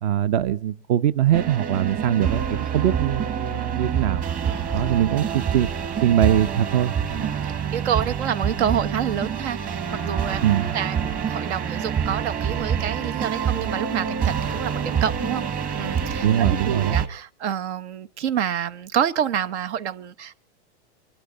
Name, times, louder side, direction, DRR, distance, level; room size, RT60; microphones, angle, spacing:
voice 1, 0.0-4.3 4.7-5.7 6.0-6.9 10.4-10.7 16.2-17.0, right 10 dB, 45° right, 0.8 m, -22 dB
sound 1, 1.3-17.1, right 7 dB, 25° right, 1.7 m, -26 dB
voice 2, 7.1-10.4 10.7-15.4 15.8-16.2 16.6-20.4, right 9 dB, 70° right, 1.3 m, -28 dB
24.5 x 12.5 x 4.0 m
supercardioid pair, 155°, 34 cm